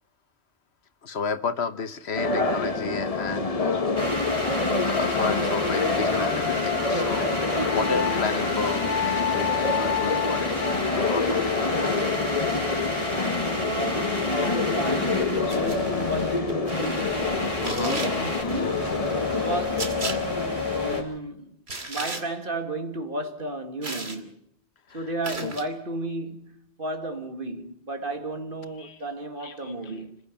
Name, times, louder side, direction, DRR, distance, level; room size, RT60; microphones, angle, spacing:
voice 1, 1.0-3.9 4.8-11.6 17.6-18.0 24.9-25.0 25.4-25.5 28.8-29.0 29.4-29.7, left 5 dB, 75° left, 1.3 m, -32 dB
sound 1, 2.1-21.0, left 4 dB, 35° left, 1.3 m, -26 dB
sound 2, 4.0-21.0, left 2 dB, 25° right, 5.1 m, -31 dB
voice 2, 13.6-18.9 19.3-19.9 20.7-21.6 21.9-24.3 24.9-30.2, right 2 dB, 55° right, 2.2 m, -33 dB
sound 3, 15.5-15.8 17.6-18.1 19.8-20.2 21.7-22.2 23.8-24.2 25.2-25.6, right 2 dB, 75° right, 2.7 m, -33 dB
27.5 x 16.0 x 7.3 m
omnidirectional pair, 1.1 m